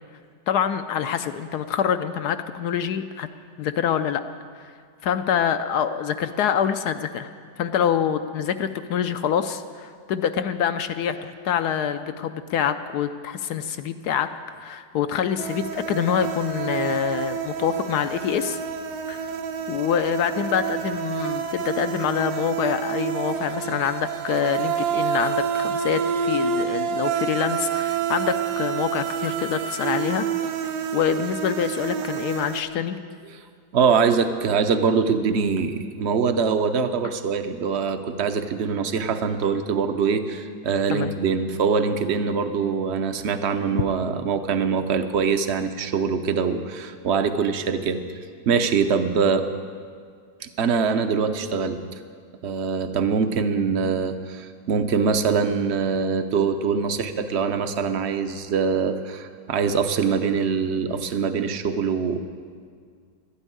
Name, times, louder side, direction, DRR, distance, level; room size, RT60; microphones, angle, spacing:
voice 1, 0.5-3.3 3.6-4.2 4.6-4.7 5.0-7.3 7.6-14.3 14.6-18.6 19.1-19.2 19.7-30.2 30.9-33.0 40.9-41.2, left 8 dB, 70° left, 10 dB, 1.0 m, -25 dB
sound 1, 15.4-32.6, right 7 dB, 90° right, 1.5 m, -28 dB
voice 2, 33.7-48.0 48.5-49.5 50.4-51.8 52.4-62.2, right 5 dB, 55° right, 8 dB, 0.7 m, -23 dB
12.5 x 9.9 x 9.4 m, 2.1 s
omnidirectional pair, 2.0 m